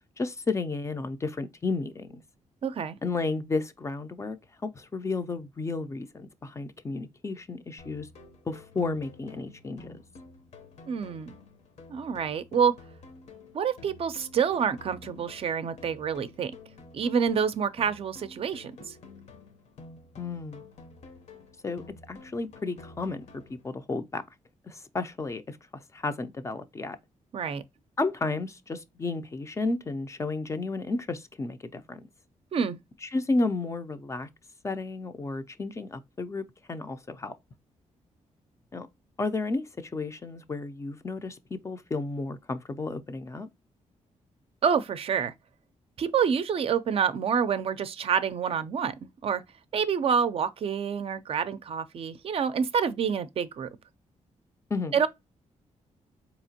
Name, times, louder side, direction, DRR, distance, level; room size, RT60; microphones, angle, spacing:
voice 1, 0.2-2.2 3.0-4.4 4.6-8.1 8.5-10.0 20.2-20.6 21.6-24.2 24.7-27.0 28.0-32.0 33.0-34.3 34.6-37.3 38.7-38.9 39.2-43.5 54.7-55.0, left 3 dB, 25° left, 0.4 m, -32 dB
voice 2, 2.6-3.0 10.9-11.3 11.9-12.7 13.5-16.5 16.9-18.9 27.3-27.6 32.5-32.8 44.6-45.3 46.0-48.9 49.2-49.4 49.7-53.7 54.9-55.1, right 7 dB, 50° right, 0.4 m, -27 dB
sound 1, 7.8-23.8, left 3 dB, 65° left, 0.8 m, -50 dB
4.3 x 2.8 x 2.7 m
wide cardioid pair, 135°, 13 cm